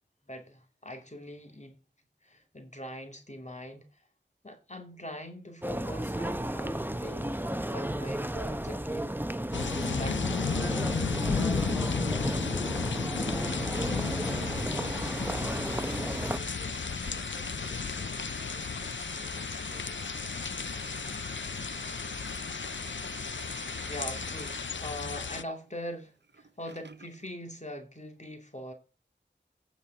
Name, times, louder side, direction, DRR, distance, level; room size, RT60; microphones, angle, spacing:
voice 1, 0.3-1.8 2.2-4.0 4.4-9.1 9.6-10.6 23.8-28.7, equal, 40° left, 2.6 m, -42 dB
voice 2, 2.3-2.7 15.6-20.6, right 1 dB, 30° right, 3.6 m, -56 dB
sound 1, 5.6-16.4, right 1 dB, 10° right, 0.8 m, -33 dB
sound 2, 9.5-25.4, left 5 dB, 85° left, 0.6 m, -34 dB
sound 3, 13.4-27.3, right 4 dB, 70° right, 0.8 m, -47 dB
9.3 x 7.0 x 6.0 m
wide cardioid pair, 45°, 19 cm